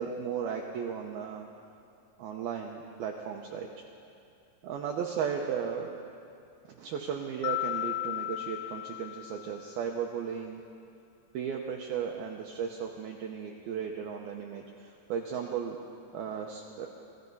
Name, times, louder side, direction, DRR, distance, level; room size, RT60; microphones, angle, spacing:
voice 1, 0.0-1.5 2.2-3.7 4.6-5.9 6.6-10.6 11.3-15.8 16.1-16.9, right 7 dB, 75° right, 1 dB, 2.3 m, -35 dB
Mallet percussion, 7.4-9.8, left 15 dB, 85° left, 2.6 m, -35 dB
26.5 x 17.5 x 5.5 m, 2.5 s
omnidirectional pair, 5.6 m